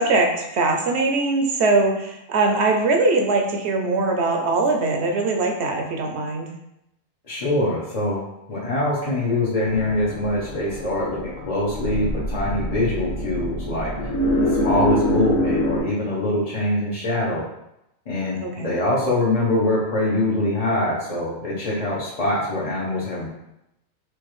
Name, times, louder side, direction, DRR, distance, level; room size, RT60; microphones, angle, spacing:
voice 1, 0.0-6.5 18.4-18.7, right 3 dB, 65° right, 2 dB, 0.8 m, -21 dB
voice 2, 7.3-8.2 8.5-13.9 14.4-17.5 18.1-23.3, left 1 dB, 40° left, -7 dB, 0.6 m, -24 dB
sound 1, 9.6-15.8, left 1 dB, 80° left, 1.3 m, -25 dB
4.6 x 2.4 x 3.0 m, 0.85 s
omnidirectional pair, 1.4 m